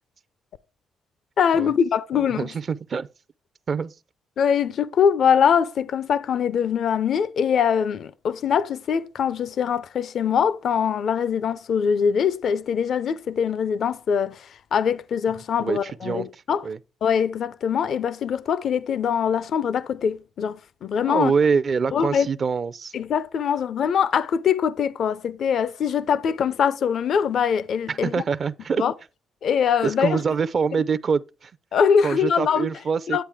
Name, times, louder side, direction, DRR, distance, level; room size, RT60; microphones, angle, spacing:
voice 1, 1.4-2.5 4.4-16.6 17.0-21.3 21.9-22.3 22.9-28.2 28.8-28.9 29.4-30.2 31.7-32.7 33.1-33.2, left 7 dB, 60° left, 0.5 m, -23 dB
voice 2, 2.1-3.1 3.7-3.9 15.6-16.8 21.1-22.9 27.9-28.8 29.8-31.5 32.0-33.2, right 5 dB, 45° right, 0.5 m, -25 dB
10.0 x 8.0 x 3.5 m
cardioid pair, 90°, 0 cm